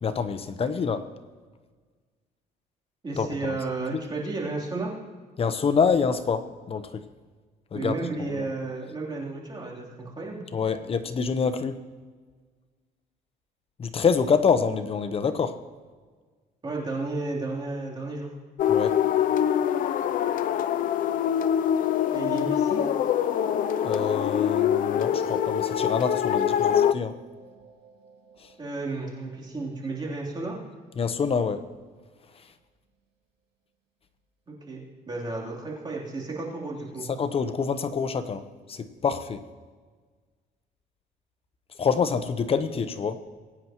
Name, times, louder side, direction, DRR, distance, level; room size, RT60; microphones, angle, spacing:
voice 1, 0.0-1.0 3.2-3.6 5.4-7.0 7.7-8.4 10.5-11.8 13.8-15.6 18.7-19.0 23.8-27.2 31.0-31.6 37.1-39.4 41.8-43.3, left 6 dB, 35° left, 10 dB, 0.9 m, -26 dB
voice 2, 3.0-4.9 7.7-10.4 16.6-18.3 22.1-22.9 28.6-30.6 34.5-34.8 35.1-37.1, right 3 dB, 25° right, -3 dB, 3.3 m, -32 dB
sound 1, 18.6-26.9, left 9 dB, 55° left, 0.5 m, -24 dB
sound 2, 21.8-31.3, right 3 dB, 80° right, 2.4 m, -46 dB
22.0 x 9.4 x 3.0 m, 1.5 s
cardioid pair, 110°, 17 cm